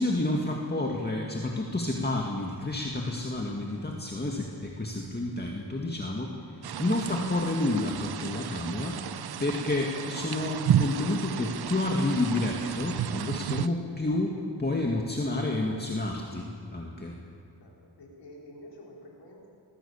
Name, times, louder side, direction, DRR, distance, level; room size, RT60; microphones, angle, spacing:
voice 1, 0.0-9.0 9.4-17.2, left 2 dB, 25° left, 0 dB, 2.2 m, -30 dB
sound 1, 6.6-13.7, right 10 dB, 65° right, 0.7 m, -32 dB
voice 2, 17.6-19.5, left 1 dB, 85° left, -2 dB, 5.2 m, -49 dB
21.0 x 19.5 x 7.3 m, 2.7 s
wide cardioid pair, 90°, 41 cm